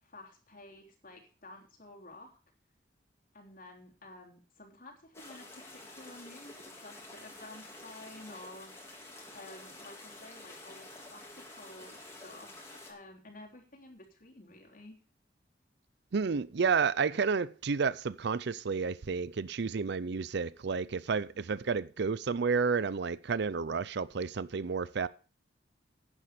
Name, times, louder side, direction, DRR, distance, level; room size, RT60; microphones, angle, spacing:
voice 1, 0.0-2.4 3.3-8.7 9.3-15.0 21.3-21.5, left 2 dB, 50° left, 3.5 m, -52 dB
sound 1, 5.1-12.9, left 2 dB, 15° left, 3.5 m, -49 dB
voice 2, 16.1-25.1, right 5 dB, 65° right, 0.5 m, -31 dB
11.0 x 10.0 x 5.0 m
head